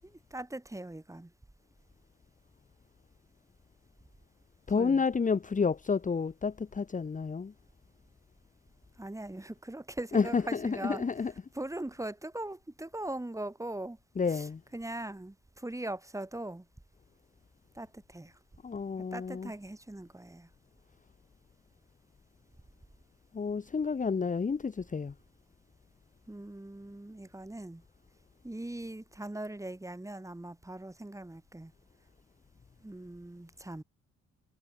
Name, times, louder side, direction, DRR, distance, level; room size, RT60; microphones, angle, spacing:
voice 1, 0.0-1.3 4.7-5.0 9.0-11.1 11.5-14.0 14.3-16.7 17.7-18.3 19.1-20.5 26.3-27.8 28.4-31.7 32.8-33.8, right 1 dB, 10° right, 7.4 m, -40 dB
voice 2, 4.7-7.5 10.1-11.3 14.2-14.6 18.6-19.5 23.3-25.1, left 5 dB, 25° left, 1.1 m, -30 dB
cardioid pair, 90°, 30 cm